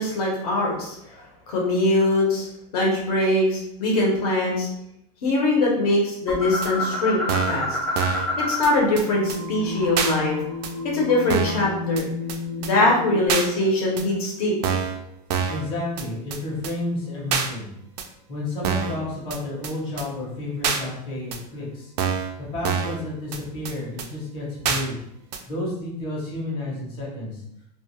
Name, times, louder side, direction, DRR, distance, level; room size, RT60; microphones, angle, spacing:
voice 1, 0.0-2.5 2.7-4.7 5.2-7.2 7.5-7.8 8.4-10.4 10.9-12.1 12.6-14.5, left 2 dB, 65° left, -2 dB, 0.9 m, -22 dB
sound 1, 6.3-8.9 9.1-11.4, left 2 dB, 10° left, 0.4 m, -29 dB
sound 2, 6.6-6.7 7.3-7.6 8.0-8.3 8.6-8.7 9.0-9.1 9.3-9.4 10.0-10.1 10.6-10.7 11.3-11.6 12.0-12.1 12.3-12.4 12.6-12.7 13.3-13.5 14.0-14.1 14.6-15.0 15.3-15.6 16.0-16.1 16.3-16.4 16.6-16.7 17.3-17.5 18.0-18.1 18.6-19.0 19.3-19.4 19.6-19.7 20.0-20.1 20.6-20.8 21.3-21.4 22.0-22.3 22.6-23.0 23.3-23.4 23.6-23.7 24.0-24.1 24.6-24.8 25.3-25.4, right 7 dB, 75° right, 0.4 m, -25 dB
sound 3, 8.7-13.3, left 4 dB, 85° left, 0.5 m, -33 dB
voice 2, 15.5-17.7 18.3-21.9 22.5-25.0 25.5-27.4, left 2 dB, 25° left, -6 dB, 0.8 m, -31 dB
2.4 x 2.3 x 2.9 m, 0.79 s
supercardioid pair, 165°, 21 cm